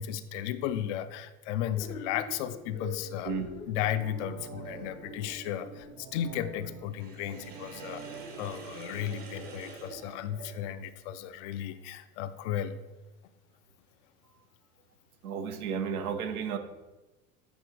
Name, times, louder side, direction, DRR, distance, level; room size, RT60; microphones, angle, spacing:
voice 1, 0.0-3.3 3.7-12.8, left 10 dB, 55° left, 12 dB, 0.5 m, -34 dB
sound 1, 1.8-5.9, left 2 dB, 85° left, 1.2 m, -45 dB
sound 2, 3.7-10.5 10.8-10.9, right 6 dB, 30° right, 0.6 m, -48 dB
Sink (filling or washing), 6.9-10.9, right 3 dB, 55° right, 1.7 m, -46 dB
voice 2, 15.2-16.6, right 6 dB, 80° right, 8 dB, 0.9 m, -32 dB
8.2 x 3.0 x 4.6 m, 1.1 s
hypercardioid pair, 90°, 43 cm